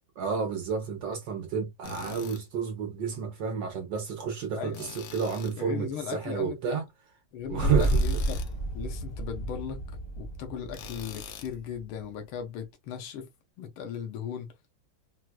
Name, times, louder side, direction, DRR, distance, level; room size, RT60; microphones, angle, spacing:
voice 1, 0.2-6.8 7.5-8.0, right 6 dB, 70° right, 1.3 m, -30 dB
Tools, 1.8-2.4 4.7-5.6 7.8-8.5 10.7-11.5, left 9 dB, 70° left, 1.3 m, -44 dB
voice 2, 4.6-4.9 5.6-6.8 7.3-8.4 8.7-9.8 10.2-13.3 13.6-14.6, left 8 dB, 90° left, 1.6 m, -37 dB
sound 1, 7.4-11.8, right 1 dB, 45° left, 0.5 m, -30 dB
4.5 x 2.2 x 2.3 m
omnidirectional pair, 2.2 m